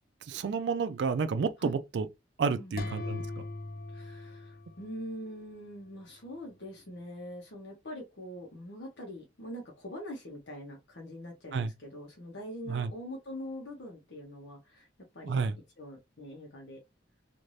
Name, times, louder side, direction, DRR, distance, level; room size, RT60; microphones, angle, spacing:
voice 1, 0.2-2.1 2.4-3.3 11.5-11.7 12.7-12.9 15.2-15.6, right 5 dB, 75° right, 0.4 m, -30 dB
voice 2, 2.5-2.9 3.9-14.9 15.1-15.4 15.8-16.8, equal, 75° left, 0.9 m, -43 dB
sound 1, 2.8-5.5, left 2 dB, 55° left, 0.4 m, -40 dB
3.2 x 2.5 x 2.6 m
head